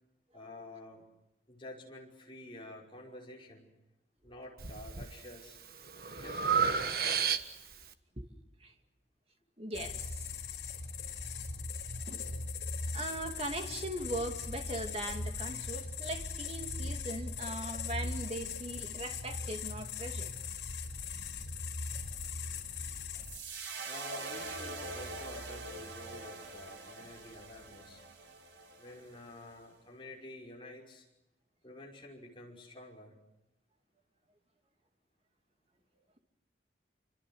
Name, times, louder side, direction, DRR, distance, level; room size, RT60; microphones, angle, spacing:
voice 1, 0.3-1.1 1.5-3.7 4.2-5.6 6.1-7.4 11.0-11.1 23.9-28.0 28.8-31.1 31.6-33.1, left 1 dB, 25° left, 5.5 m, -50 dB
Breathing, 4.6-5.1 5.6-7.8, right 6 dB, 55° right, 1.4 m, -31 dB
voice 2, 9.6-10.3 12.1-12.2 12.9-20.3, right 1 dB, 30° right, 2.4 m, -40 dB
sound 1, 9.7-23.4, left 4 dB, 75° left, 5.2 m, -39 dB
sound 2, 23.2-29.5, right 3 dB, 80° right, 4.1 m, -44 dB
28.0 x 25.5 x 6.3 m
head